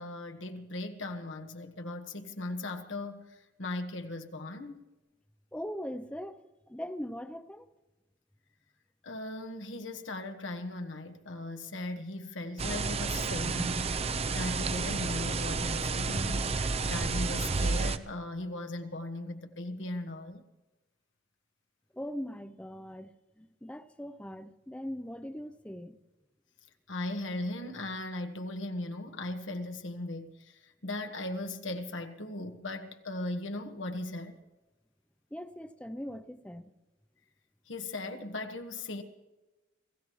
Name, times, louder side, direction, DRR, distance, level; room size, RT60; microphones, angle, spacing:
voice 1, 0.0-3.3 3.6-4.8 9.0-13.8 14.3-16.6 16.8-20.4 26.9-30.3 30.8-34.4 37.7-39.0, left 2 dB, 90° left, 1.5 m, -38 dB
voice 2, 5.5-7.6 21.9-26.0 35.3-36.7, equal, 5° left, 0.6 m, -41 dB
sound 1, 12.6-18.0, right 4 dB, 35° right, 0.6 m, -31 dB
26.5 x 15.5 x 3.2 m
head